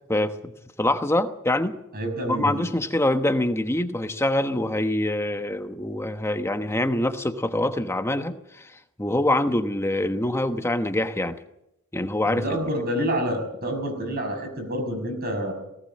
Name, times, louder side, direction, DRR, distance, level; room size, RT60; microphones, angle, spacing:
voice 1, 0.1-0.5 0.8-1.8 2.3-8.7 9.0-11.3 11.9-12.4, left 1 dB, 10° left, 8 dB, 1.1 m, -25 dB
voice 2, 1.9-2.7 12.3-15.5, equal, 45° right, 4 dB, 5.9 m, -28 dB
19.0 x 18.5 x 7.5 m, 0.83 s
head